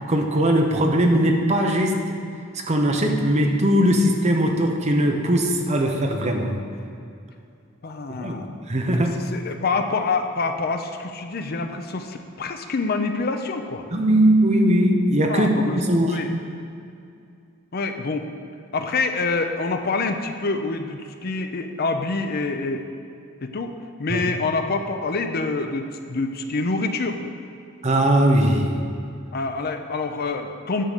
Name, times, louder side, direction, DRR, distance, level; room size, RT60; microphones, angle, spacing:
voice 1, 0.1-2.2 2.7-6.6 8.1-9.3 13.9-16.3 24.1-24.2 27.8-28.8, right 1 dB, 35° right, 3 dB, 0.8 m, -20 dB
voice 2, 7.8-8.5 8.9-13.9 15.3-15.8 16.1-16.3 17.7-18.3 18.7-22.9 23.4-23.7 24.0-27.2 29.3-30.8, left 3 dB, 50° left, 6 dB, 0.6 m, -26 dB
10.0 x 3.8 x 6.6 m, 2.5 s
head